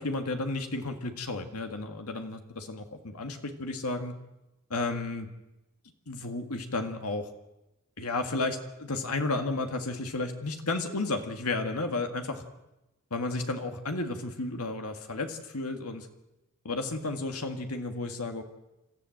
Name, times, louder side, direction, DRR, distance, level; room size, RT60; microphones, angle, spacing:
voice 1, 0.0-4.1 4.7-5.3 6.1-7.3 8.0-12.4 13.1-16.1 16.6-18.4, left 2 dB, 85° left, 5 dB, 2.0 m, -32 dB
28.0 x 13.5 x 7.9 m, 0.99 s
head